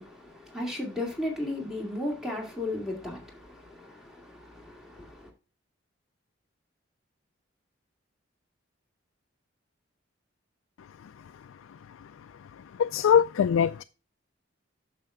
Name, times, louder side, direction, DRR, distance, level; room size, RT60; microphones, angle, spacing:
voice 1, 0.0-5.3, left 1 dB, 5° right, 2.3 m, -35 dB
voice 2, 12.8-13.8, left 8 dB, 85° left, 0.3 m, -22 dB
9.0 x 6.7 x 3.6 m
head